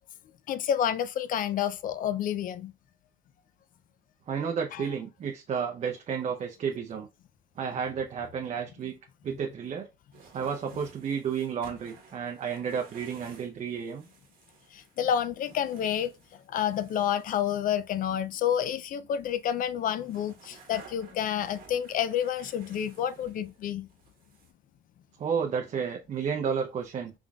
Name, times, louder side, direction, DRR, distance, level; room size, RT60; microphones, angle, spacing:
voice 1, 0.5-2.7 4.7-4.9 14.7-16.1 16.5-23.9, left 9 dB, 55° left, 0.4 m, -29 dB
voice 2, 4.3-7.1 7.6-9.0 9.2-9.9 10.3-14.1 25.2-27.1, right 7 dB, 40° right, 0.6 m, -32 dB
sound 1, 10.1-18.9 19.2-23.6 23.9-24.5, right 4 dB, 55° right, 1.2 m, -54 dB
3.7 x 3.5 x 2.3 m
cardioid pair, 110°, 17 cm